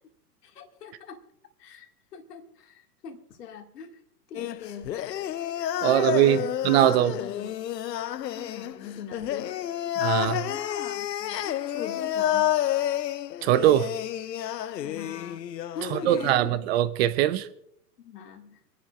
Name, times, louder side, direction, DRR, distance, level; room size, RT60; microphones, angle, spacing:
voice 1, 0.4-1.2 1.6-4.0 4.3-5.3 5.8-6.5 6.8-7.6 8.3-9.6 10.3-12.5 14.8-15.4 15.7-16.7 18.0-18.6, left 6 dB, 75° left, 2.1 m, -41 dB
sound 1, 4.3-16.3, left 11 dB, 90° left, 0.6 m, -30 dB
voice 2, 5.8-7.1 10.0-10.4 13.4-13.9 15.9-17.5, right 13 dB, 40° right, 0.7 m, -22 dB
27.0 x 11.0 x 2.4 m
hypercardioid pair, 120°, 48 cm